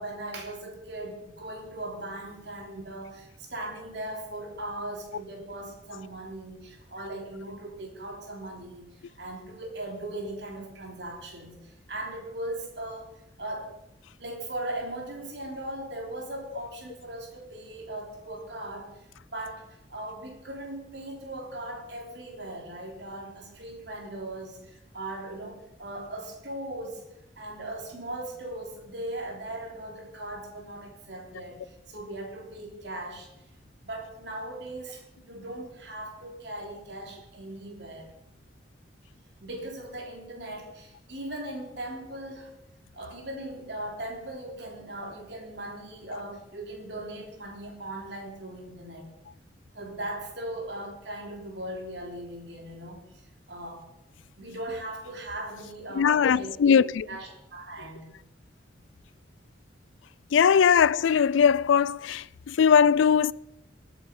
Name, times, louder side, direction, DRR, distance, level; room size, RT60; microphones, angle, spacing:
voice 1, 0.0-13.7 14.2-27.0 27.4-33.3 33.8-38.1 39.4-42.5 42.9-49.1 49.7-53.8 54.4-56.7 57.0-58.1, right 1 dB, 60° right, 3.4 m, -39 dB
voice 2, 56.0-57.0 60.3-63.3, left 7 dB, 80° left, 0.4 m, -20 dB
21.0 x 8.2 x 5.3 m
head